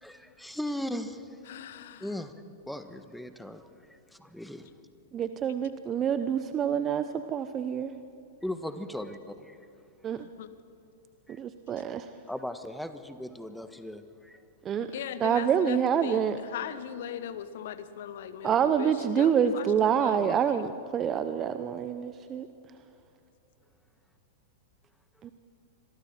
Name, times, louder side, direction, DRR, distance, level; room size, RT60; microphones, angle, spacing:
voice 1, 0.0-1.4 2.0-2.3 2.7-3.7 4.2-4.7 8.4-9.6 11.3-11.4 12.3-14.4, left 1 dB, ahead, 1.4 m, -37 dB
voice 2, 1.5-2.1 10.4-10.5 14.8-20.4, left 9 dB, 60° left, 1.3 m, -39 dB
voice 3, 5.1-7.9 10.0-10.3 11.4-12.1 14.6-14.9 15.2-16.4 18.4-22.5 25.2-25.3, right 8 dB, 30° right, 0.8 m, -27 dB
26.5 x 23.0 x 4.4 m
figure-of-eight pair, 100°, 0 cm